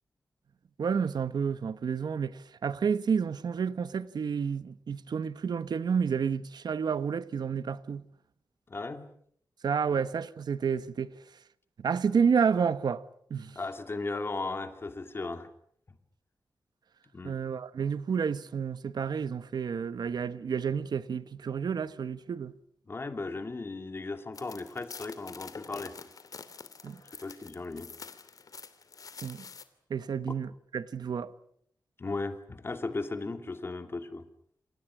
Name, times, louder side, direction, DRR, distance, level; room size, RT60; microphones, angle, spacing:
voice 1, 0.8-8.0 9.6-11.1 11.8-13.0 13.3-13.6 17.2-22.5 26.8-27.0 29.2-29.4 29.9-31.3, right 6 dB, 80° right, 1.2 m, -30 dB
voice 2, 8.7-9.1 9.9-10.0 13.6-15.5 17.1-17.4 22.9-26.0 27.2-27.9 32.0-34.3, left 3 dB, 35° left, 2.6 m, -36 dB
sound 1, 24.3-29.6, left 5 dB, 60° left, 2.7 m, -47 dB
28.5 x 28.0 x 6.2 m
wide cardioid pair, 175°, 7 cm